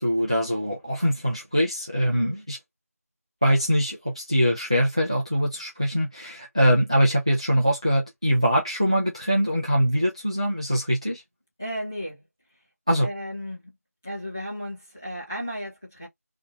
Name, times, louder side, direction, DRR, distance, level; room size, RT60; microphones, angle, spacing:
voice 1, 0.0-2.6 3.4-11.2 12.9-13.1, equal, 20° right, 0.4 m, -23 dB
voice 2, 11.6-12.2 13.0-13.7 14.0-16.1, equal, 10° left, 1.0 m, -34 dB
2.7 x 2.4 x 3.9 m
figure-of-eight pair, 175°, 8 cm